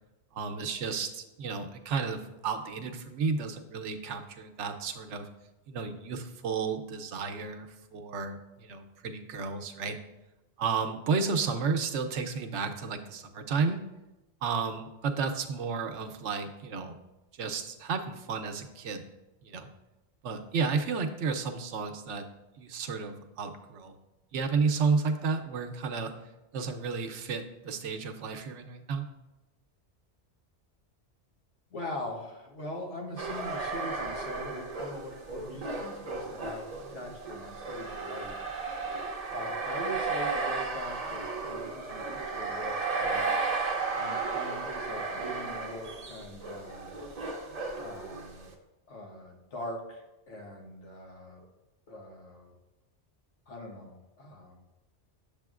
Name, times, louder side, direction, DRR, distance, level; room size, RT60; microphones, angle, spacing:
voice 1, 0.3-5.3 5.7-10.0 10.6-13.8 14.4-17.0 17.3-19.0 19.4-19.7 20.2-22.3 22.6-23.9 24.3-26.1 26.5-29.0, right 5 dB, 85° right, 6 dB, 1.0 m, -32 dB
voice 2, 31.7-38.4 39.3-43.3 44.0-46.9 47.8-48.5 48.9-51.4 51.9-52.5 53.5-54.6, left 1 dB, 80° left, 0 dB, 1.3 m, -42 dB
sound 1, 33.2-48.5, right 4 dB, 40° right, 0.7 m, -34 dB
7.5 x 6.9 x 2.4 m, 1.0 s
omnidirectional pair, 1.2 m